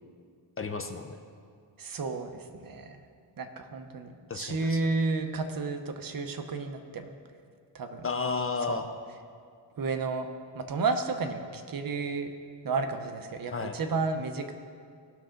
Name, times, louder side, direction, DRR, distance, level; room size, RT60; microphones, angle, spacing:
voice 1, 0.6-1.2 4.3-4.8 8.0-8.9 13.5-13.8, left 4 dB, 30° left, 6 dB, 0.6 m, -32 dB
voice 2, 1.8-3.0 3.4-7.1 7.7-8.1 8.7-8.8 9.8-10.3 10.5-12.3 12.6-14.5, right 3 dB, 50° right, 6 dB, 0.9 m, -32 dB
18.0 x 6.4 x 3.8 m, 2.2 s
wide cardioid pair, 140°, 44 cm